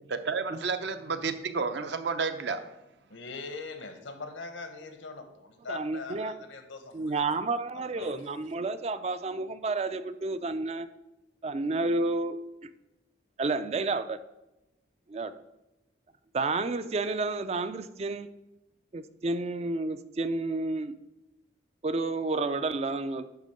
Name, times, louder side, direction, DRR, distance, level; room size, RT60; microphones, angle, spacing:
voice 1, 0.1-2.6, right 4 dB, 65° right, 9 dB, 0.7 m, -31 dB
voice 2, 3.1-7.1 8.0-8.3, left 4 dB, 85° left, 7 dB, 1.1 m, -41 dB
voice 3, 5.7-6.4 6.9-10.9 11.4-12.7 13.4-14.2 15.1-15.3 16.3-18.3 18.9-20.9 21.8-23.3, right 3 dB, 35° right, 12 dB, 0.3 m, -30 dB
10.5 x 3.6 x 6.5 m, 0.98 s
head